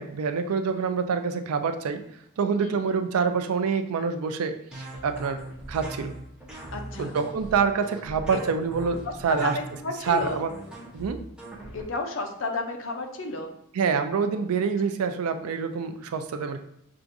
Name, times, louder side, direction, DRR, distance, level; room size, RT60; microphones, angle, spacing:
voice 1, 0.0-2.0 2.4-5.4 5.7-6.1 7.0-9.6 10.0-10.5 10.9-11.2 13.7-16.6, right 5 dB, 85° right, 8 dB, 0.4 m, -26 dB
sound 1, 4.7-11.8, right 1 dB, 5° right, 0.6 m, -40 dB
voice 2, 6.7-7.2 9.0-10.4 11.7-13.5, left 3 dB, 60° left, 4 dB, 0.5 m, -32 dB
5.7 x 2.5 x 2.6 m, 0.75 s
head